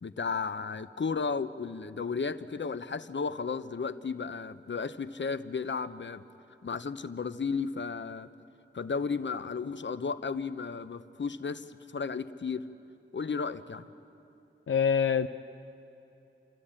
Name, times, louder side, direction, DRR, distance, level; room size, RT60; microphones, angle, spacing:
voice 1, 0.0-6.2 6.6-8.3 8.7-12.6 13.1-13.9, left 5 dB, 65° left, 12 dB, 0.8 m, -34 dB
voice 2, 14.7-15.3, left 7 dB, 90° left, 8 dB, 0.4 m, -25 dB
29.0 x 13.0 x 8.8 m, 2.9 s
wide cardioid pair, 60°, 20 cm